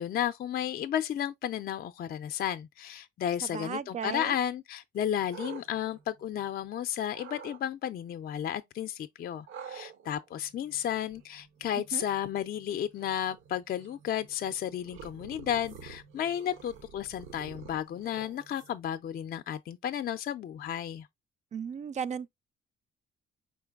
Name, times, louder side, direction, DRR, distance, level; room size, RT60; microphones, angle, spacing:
voice 1, 0.0-21.1, left 10 dB, 50° left, 0.4 m, -33 dB
voice 2, 3.4-4.3 11.9-12.0 21.5-22.3, right 7 dB, 35° right, 0.4 m, -35 dB
sound 1, 5.0-6.7 7.1-7.6 9.5-18.9, right 7 dB, 80° right, 0.7 m, -49 dB
5.0 x 3.9 x 2.3 m
cardioid pair, 90°, 20 cm